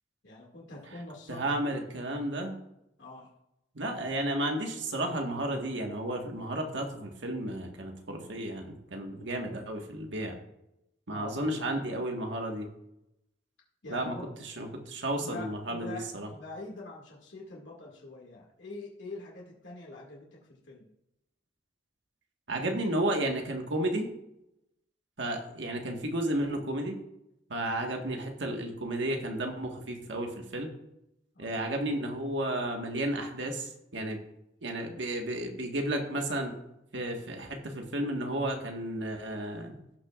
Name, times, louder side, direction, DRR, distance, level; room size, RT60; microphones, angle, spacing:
voice 1, 0.2-1.7 3.0-3.3 4.0-4.1 11.1-11.6 13.8-14.3 15.2-20.9 31.3-31.6, left 2 dB, 85° left, -3 dB, 2.1 m, -44 dB
voice 2, 1.3-2.6 3.7-10.4 11.1-12.7 13.9-14.2 14.6-16.3 22.5-24.1 25.2-27.0 27.5-30.7 31.4-34.2 34.6-36.6 36.9-39.8, right 1 dB, 80° right, 2 dB, 1.5 m, -32 dB
17.0 x 5.9 x 2.4 m, 0.85 s
head